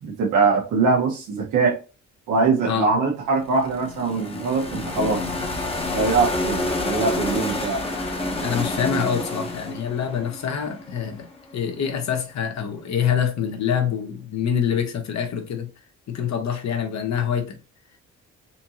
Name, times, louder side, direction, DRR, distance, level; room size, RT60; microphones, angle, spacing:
voice 1, 0.0-1.8 2.3-5.2 5.6-7.8, right 4 dB, 90° right, 1.4 m, -22 dB
voice 2, 2.7-3.0 8.4-11.3 11.5-15.7 16.1-17.6, left 8 dB, 65° left, 1.1 m, -25 dB
sound 1, 3.3-11.3, left 2 dB, 20° left, 1.0 m, -28 dB
4.3 x 2.9 x 2.8 m
cardioid pair, 90°, 30 cm